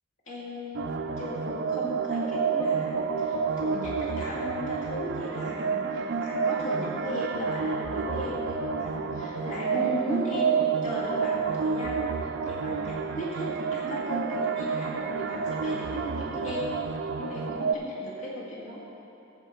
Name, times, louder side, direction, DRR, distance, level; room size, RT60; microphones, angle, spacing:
voice 1, 0.3-10.6 10.8-16.6 17.2-18.8, equal, 85° left, -6 dB, 2.1 m, -36 dB
sound 1, 0.7-17.7, right 5 dB, 55° right, 0.4 m, -29 dB
14.0 x 5.0 x 5.6 m, 2.9 s
head